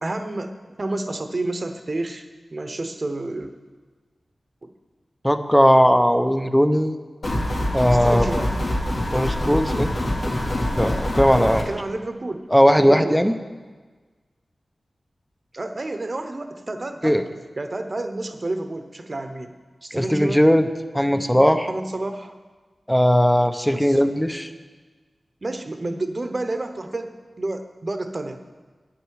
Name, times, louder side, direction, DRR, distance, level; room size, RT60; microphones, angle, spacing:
voice 1, 0.0-2.2 2.5-3.5 4.6-4.7 7.9-8.5 11.5-12.5 12.9-13.2 15.5-17.2 17.6-19.5 19.8-20.5 21.7-22.3 23.7-24.0 25.4-28.4, right 2 dB, 45° right, 8 dB, 0.9 m, -30 dB
voice 2, 5.2-7.0 7.7-8.3 9.1-9.9 10.2-10.3 10.8-11.6 12.5-13.3 17.0-17.2 19.9-20.7 20.9-21.7 22.9-24.5, equal, 5° left, 8 dB, 0.7 m, -18 dB
sound 1, 7.2-11.6, left 1 dB, 75° left, 3.0 m, -25 dB
11.5 x 9.9 x 4.8 m, 1.4 s
wide cardioid pair, 65°, 0 cm